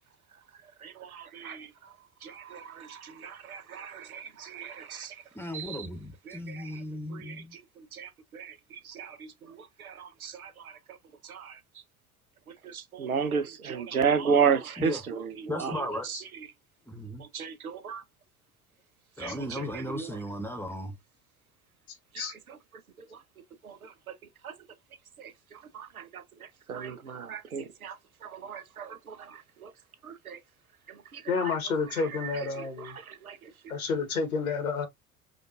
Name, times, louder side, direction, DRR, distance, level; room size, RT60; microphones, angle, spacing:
voice 1, 0.8-1.7 2.2-5.1 5.5-5.8 6.3-6.6 7.1-7.3 7.9-8.5 8.9-9.3 9.8-10.5 11.3-11.5 12.6-15.7 17.3-18.0 19.2-19.6 22.1-22.3 23.6-23.8 24.4-24.5 25.7-26.2 26.7-27.9 28.2-29.2 29.6-29.7 30.0-30.4 31.1-31.2 32.2-32.3 33.3-33.4, right 6 dB, 85° right, 0.7 m, -32 dB
voice 2, 5.3-7.6 14.8-15.0 15.5-16.1 16.9-17.2 19.2-20.9, left 1 dB, 5° left, 0.9 m, -36 dB
voice 3, 31.3-33.0 33.7-34.9, left 5 dB, 85° left, 1.2 m, -30 dB
5.2 x 2.5 x 2.5 m
figure-of-eight pair, 65°, 42 cm